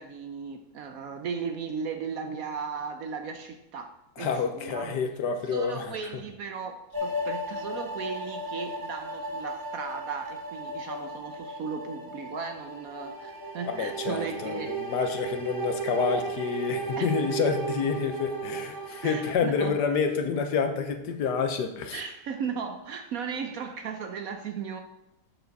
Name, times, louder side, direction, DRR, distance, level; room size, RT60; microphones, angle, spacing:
voice 1, 0.0-5.0 5.5-14.8 17.0-17.2 19.0-19.8 21.9-24.8, right 6 dB, 65° right, 6 dB, 0.9 m, -36 dB
voice 2, 4.2-6.0 13.7-22.0, left 6 dB, 75° left, 7 dB, 1.4 m, -28 dB
sound 1, 6.9-19.3, right 2 dB, 30° right, 0.3 m, -35 dB
7.7 x 6.9 x 4.1 m, 0.89 s
omnidirectional pair, 1.9 m